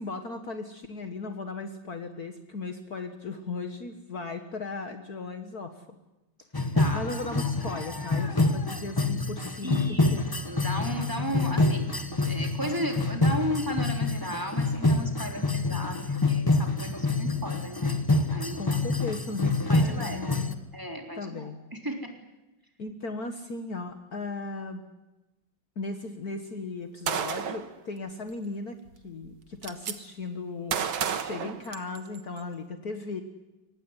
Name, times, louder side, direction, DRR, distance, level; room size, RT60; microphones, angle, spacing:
voice 1, 0.0-5.8 6.6-10.3 18.5-20.6 21.1-21.6 22.8-24.8 25.8-28.8 29.0-30.8 31.1-33.2, left 3 dB, 50° left, 7 dB, 1.9 m, -37 dB
sound 1, 6.5-20.5, left 2 dB, 15° left, 0.9 m, -27 dB
voice 2, 9.6-10.2 10.5-11.9 12.3-18.0 18.3-19.2 19.7-20.2 20.7-22.0, equal, 10° right, 2 dB, 3.6 m, -35 dB
Gunshot gunfire, 27.1-27.7 28.9-29.0 29.2-29.9 30.7-32.2, right 7 dB, 90° right, 2.2 m, -31 dB
24.0 x 19.0 x 9.8 m, 1.0 s
omnidirectional pair, 2.2 m